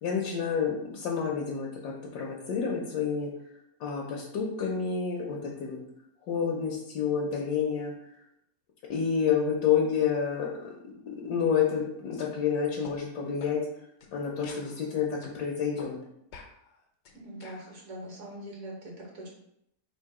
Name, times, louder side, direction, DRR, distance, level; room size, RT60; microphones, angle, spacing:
voice 1, 0.0-3.3 3.8-5.8 6.3-7.9 8.9-11.0 11.2-13.6 14.1-16.0, left 7 dB, 80° left, -2 dB, 1.3 m, -29 dB
sound 1, 12.1-12.3 12.8-13.0 13.4-13.6 14.0-14.1 14.4-15.4 15.8-15.9 16.3-17.7, left 4 dB, 65° left, 0.7 m, -49 dB
voice 2, 17.1-19.3, right 1 dB, 60° right, -2 dB, 1.6 m, -42 dB
3.8 x 2.6 x 4.7 m, 0.76 s
omnidirectional pair, 1.7 m